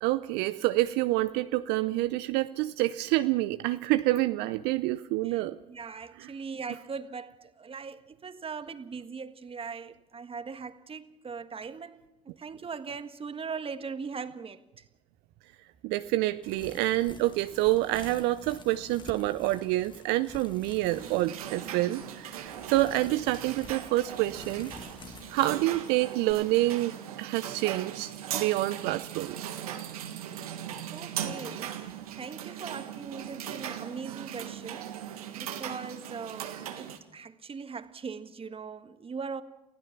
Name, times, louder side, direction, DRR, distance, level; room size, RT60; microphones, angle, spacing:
voice 1, 0.0-5.6 6.2-6.3 15.8-24.7 25.3-29.6, right 17 dB, 65° right, 0.6 m, -28 dB
voice 2, 5.2-12.0 12.2-14.8 30.9-39.4, right 5 dB, 30° right, 1.6 m, -40 dB
sound 1, 16.4-26.3, left 4 dB, 25° left, 2.1 m, -49 dB
sound 2, 20.9-37.0, right 10 dB, 85° right, 1.7 m, -39 dB
29.5 x 16.0 x 6.0 m
hypercardioid pair, 60°, 18 cm